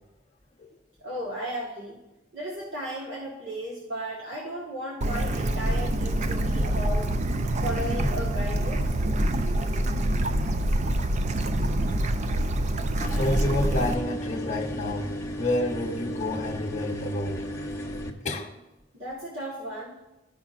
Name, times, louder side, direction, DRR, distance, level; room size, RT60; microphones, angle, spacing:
voice 1, 1.0-2.0 2.3-7.1 7.6-8.9 18.9-20.0, equal, 65° right, -6 dB, 1.3 m, -35 dB
Bird / Stream, 5.0-13.9, right 1 dB, 40° right, 0.4 m, -26 dB
sound 1, 13.0-18.1, equal, 15° left, 0.8 m, -34 dB
voice 2, 13.1-15.1 15.4-17.5 18.2-18.5, left 1 dB, 40° left, -1 dB, 1.0 m, -29 dB
13.5 x 5.6 x 2.4 m, 1.0 s
head